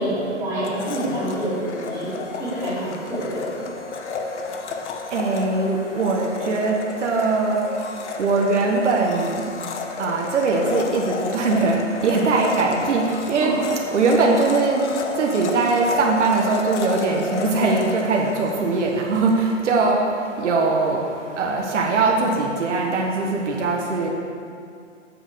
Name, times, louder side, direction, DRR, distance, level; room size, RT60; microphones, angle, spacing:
voice 1, 0.0-3.7 13.4-13.6, right 1 dB, 10° right, -10 dB, 2.6 m, -27 dB
Domestic sounds home sounds, 0.6-19.4, left 4 dB, 65° left, 1.0 m, -32 dB
voice 2, 5.1-6.7 7.0-7.6 8.2-9.4 10.0-11.8 12.0-13.5 13.9-14.8 15.2-19.4 19.6-20.0 20.4-21.0 21.4-24.1, right 3 dB, 70° right, 0 dB, 1.3 m, -21 dB
8.1 x 5.9 x 6.7 m, 2.4 s
hypercardioid pair, 155°, 37 cm